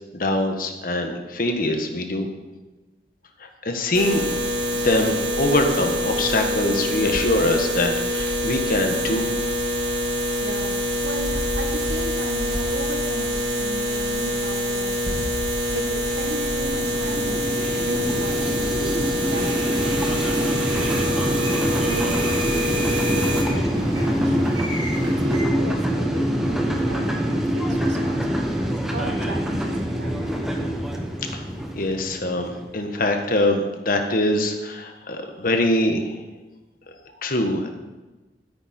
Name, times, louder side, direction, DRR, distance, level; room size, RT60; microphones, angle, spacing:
voice 1, 0.1-2.3 3.4-4.2 4.7-9.3 31.2-31.4 31.7-36.2 37.2-37.7, left 1 dB, 50° left, 5 dB, 1.4 m, -23 dB
sound 1, 3.9-23.4, equal, 65° right, 2.2 m, -25 dB
voice 2, 10.4-15.3 15.7-17.4 17.7-24.6 25.0-30.3, right 1 dB, 80° right, 5 dB, 1.6 m, -35 dB
sound 2, 16.1-32.8, equal, ahead, 1.3 m, -25 dB
sound 3, 19.3-25.4, equal, 25° right, 3.4 m, -33 dB
13.5 x 9.9 x 4.4 m, 1.2 s
head